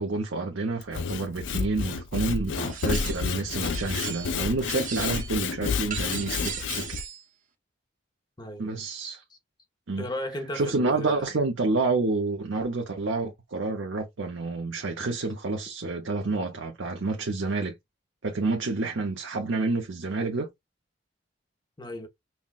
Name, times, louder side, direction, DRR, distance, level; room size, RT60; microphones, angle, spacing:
voice 1, 0.0-7.0 8.6-9.2 9.9-10.0 10.5-17.7 18.2-20.5, right 3 dB, 75° right, 0.7 m, -29 dB
Sawing / Wood, 0.8-7.0, left 5 dB, 70° left, 0.4 m, -30 dB
sound 1, 2.6-3.3 3.6-4.4 4.7-5.4 5.9-7.2, right 8 dB, 40° right, 0.8 m, -37 dB
voice 2, 8.4-8.9 9.3-9.4 10.0-11.4 21.8-22.1, left 1 dB, 20° left, 0.7 m, -36 dB
5.6 x 2.2 x 2.4 m
head